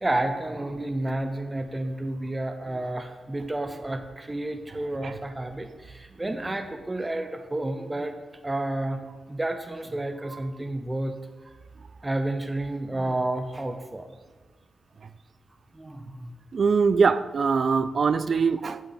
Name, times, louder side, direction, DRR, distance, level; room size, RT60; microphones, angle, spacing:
voice 1, 0.0-8.2 8.4-9.0 9.3-11.1 12.0-14.1 15.7-16.3 16.8-17.0, right 1 dB, 20° right, 0.6 m, -30 dB
voice 2, 16.5-18.8, right 5 dB, 55° right, 0.4 m, -22 dB
8.3 x 7.9 x 4.0 m
cardioid pair, 85°, 0 cm